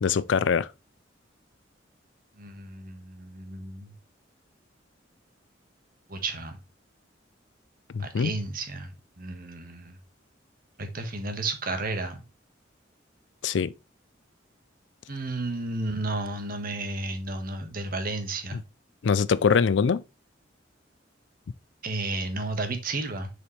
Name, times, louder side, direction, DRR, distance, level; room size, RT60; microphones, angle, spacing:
voice 1, 0.0-0.7 7.9-8.3 13.4-13.7 18.5-18.6 19.0-20.0, left 6 dB, 70° left, 0.4 m, -23 dB
voice 2, 2.4-3.9 6.1-6.6 8.0-10.0 10.8-12.2 15.1-18.6 21.8-23.3, right 2 dB, 50° right, 1.4 m, -32 dB
6.9 x 5.0 x 3.2 m
head